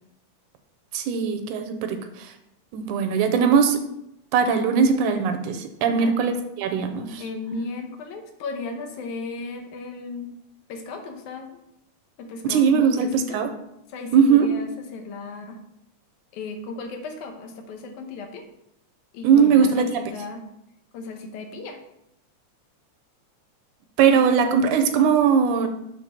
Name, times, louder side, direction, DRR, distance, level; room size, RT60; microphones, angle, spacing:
voice 1, 0.9-2.3 2.7-3.8 4.3-7.2 12.4-13.5 14.1-14.5 19.2-20.0 24.0-25.7, right 6 dB, 85° right, 7 dB, 2.1 m, -20 dB
voice 2, 5.8-6.2 7.2-10.3 10.7-11.5 12.2-13.4 13.9-15.6 16.3-18.4 19.1-20.4 20.9-21.8, left 3 dB, 75° left, 5 dB, 2.3 m, -35 dB
7.3 x 3.9 x 5.6 m, 0.82 s
omnidirectional pair, 3.6 m